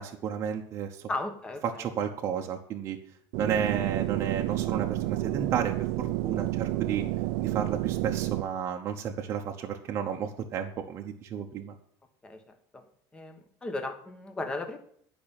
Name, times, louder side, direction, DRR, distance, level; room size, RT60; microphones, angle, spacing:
voice 1, 0.0-1.0 1.6-3.0 3.4-7.1 7.4-11.8, right 8 dB, 35° right, 2 dB, 0.9 m, -32 dB
voice 2, 1.1-1.8 12.2-12.9 13.1-14.8, left 2 dB, 10° left, 7 dB, 1.2 m, -36 dB
sound 1, 3.3-8.4, right 16 dB, 70° right, 0.6 m, -30 dB
11.5 x 5.5 x 8.8 m, 0.63 s
cardioid pair, 175°, 8 cm